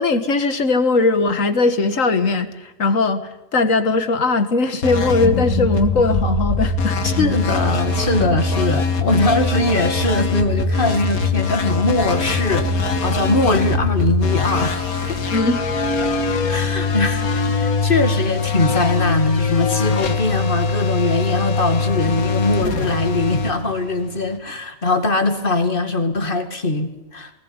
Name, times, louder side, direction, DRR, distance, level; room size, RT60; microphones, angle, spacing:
voice 1, 0.0-7.0 15.3-15.6, left 3 dB, 65° left, 10 dB, 2.0 m, -19 dB
sound 1, 4.8-24.4, left 3 dB, 90° left, 2.1 m, -22 dB
voice 2, 7.0-15.2 16.5-27.3, left 2 dB, 40° left, 8 dB, 2.3 m, -21 dB
20.0 x 19.0 x 9.7 m, 0.94 s
omnidirectional pair, 1.5 m